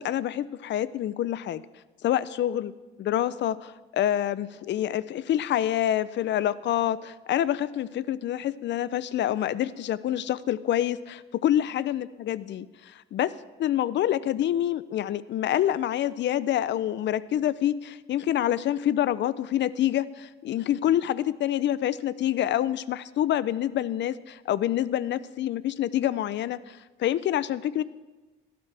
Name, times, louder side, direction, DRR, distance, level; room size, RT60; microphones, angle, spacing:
voice 1, 0.0-1.6 2.0-2.7 3.0-13.3 13.6-27.8, left 11 dB, 65° left, 17 dB, 0.5 m, -27 dB
16.5 x 12.0 x 3.4 m, 1.2 s
cardioid pair, 90°, 20 cm